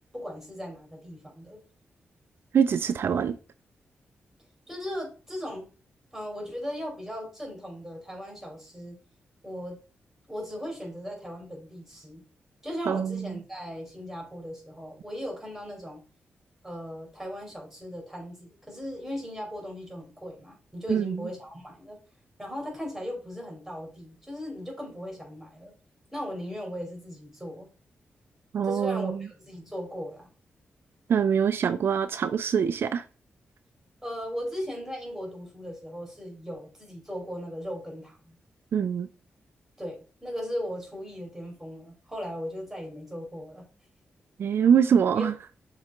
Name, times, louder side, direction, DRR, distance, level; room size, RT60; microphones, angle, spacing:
voice 1, 0.1-1.6 4.7-5.7 6.1-9.0 9.4-9.8 10.3-12.2 12.6-16.0 16.6-22.0 22.4-25.7 26.1-27.7 28.6-30.3 34.0-38.3 39.8-43.7 45.2-45.3, equal, 5° right, 3.3 m, -37 dB
voice 2, 2.5-3.4 12.9-13.3 20.9-21.2 28.5-29.1 31.1-33.0 38.7-39.1 44.4-45.3, right 7 dB, 65° right, 0.4 m, -24 dB
6.3 x 4.0 x 3.8 m
cardioid pair, 85°, 4 cm